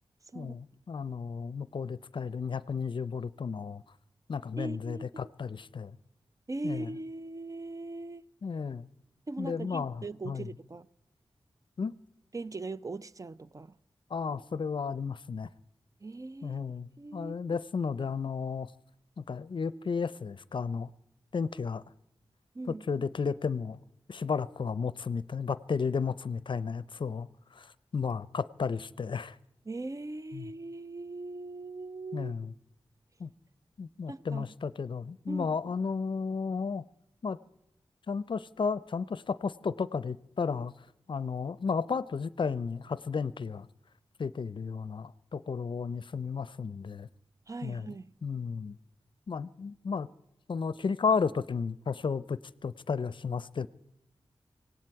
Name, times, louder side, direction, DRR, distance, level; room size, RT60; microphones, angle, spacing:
voice 1, 0.3-3.8 4.3-6.0 6.6-7.0 8.4-8.9 9.4-10.5 11.8-12.0 14.1-15.5 16.4-18.7 19.2-20.9 21.3-21.8 22.7-23.8 24.1-29.4 30.3-30.5 32.1-32.5 33.2-33.3 33.8-36.8 37.2-37.4 38.1-40.7 41.1-43.7 44.2-47.1 47.6-48.0 48.2-48.8 49.3-50.1 50.5-53.7, left 5 dB, 60° left, 0.5 m, -33 dB
voice 2, 4.6-5.2 6.5-8.2 9.3-10.9 12.3-13.7 16.0-16.6 17.0-17.6 22.5-22.8 29.7-32.3 34.1-34.4 35.3-35.5 47.5-48.1, right 2 dB, 35° right, 0.5 m, -40 dB
18.0 x 17.5 x 4.7 m
cardioid pair, 60°, 10 cm